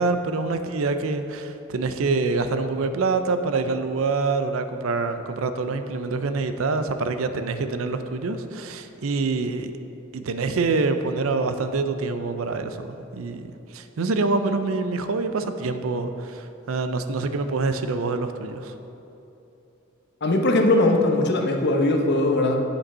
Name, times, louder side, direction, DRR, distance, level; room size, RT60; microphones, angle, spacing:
voice 1, 0.0-9.7 10.1-18.7, right 3 dB, 75° right, 9 dB, 0.5 m, -26 dB
voice 2, 20.2-22.6, left 2 dB, 55° left, 3 dB, 0.9 m, -20 dB
8.7 x 5.3 x 5.5 m, 2.9 s
head